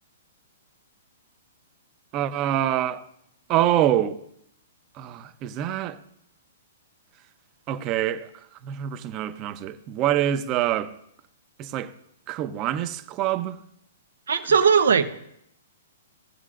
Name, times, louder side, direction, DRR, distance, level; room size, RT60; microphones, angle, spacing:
voice 1, 2.1-3.0 3.5-4.2 4.9-6.0 7.7-8.3 8.6-10.9 11.6-11.9 12.3-13.6, right 12 dB, 35° right, 0.7 m, -25 dB
voice 2, 14.3-15.1, right 6 dB, 85° right, 0.8 m, -18 dB
16.5 x 7.3 x 2.5 m
hypercardioid pair, 130°, 0 cm